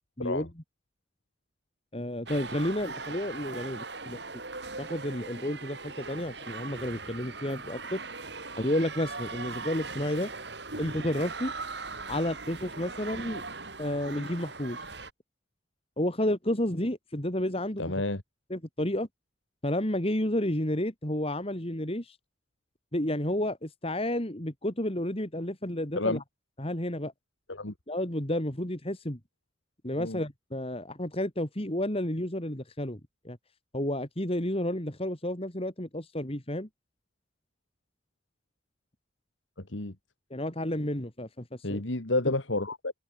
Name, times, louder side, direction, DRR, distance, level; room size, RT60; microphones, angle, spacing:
voice 1, 1.9-4.2 4.8-8.0 8.6-10.3 10.8-11.5 12.1-13.4 13.8-14.8 16.0-17.9 18.5-19.1 19.6-22.2 22.9-26.2 26.6-27.1 27.9-29.2 29.8-33.0 33.2-33.4 33.7-36.7 40.3-41.8, left 1 dB, 30° left, 3.3 m, -31 dB
sound 1, 2.3-15.1, right 4 dB, 60° right, 7.7 m, -40 dB
voice 2, 17.8-18.2 26.0-26.2 27.5-27.7 30.0-30.2 39.7-39.9 41.6-42.9, left 2 dB, 90° left, 2.7 m, -30 dB
head